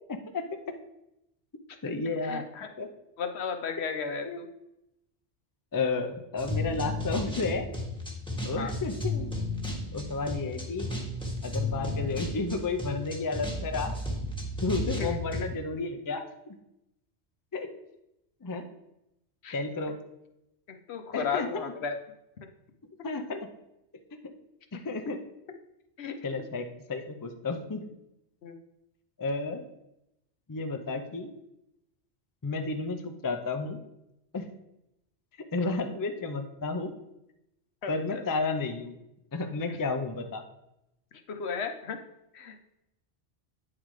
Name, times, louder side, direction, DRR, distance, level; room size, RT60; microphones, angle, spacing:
voice 1, 0.1-0.5 1.8-2.4 2.8-2.9 4.3-4.4 5.7-7.7 8.4-9.3 9.9-10.9 11.4-14.0 14.6-16.6 17.5-17.7 18.4-18.6 19.5-20.0 21.1-21.6 23.0-23.5 24.7-25.2 26.2-27.8 29.2-29.7 30.5-31.3 32.4-33.8 34.3-34.5 35.5-36.9 37.9-39.0 39.3-40.4, left 3 dB, 25° left, 6 dB, 0.4 m, -32 dB
voice 2, 2.2-2.7 3.2-4.5 8.6-8.7 14.9-15.5 19.4-19.6 20.9-22.0 26.0-26.2 28.4-28.5 37.8-38.2 39.7-39.8 41.3-42.0 42.3-42.6, left 6 dB, 70° left, 6 dB, 1.0 m, -34 dB
sound 1, 6.4-15.4, left 2 dB, 5° left, 1.2 m, -33 dB
8.8 x 3.9 x 4.7 m, 0.87 s
omnidirectional pair, 1.2 m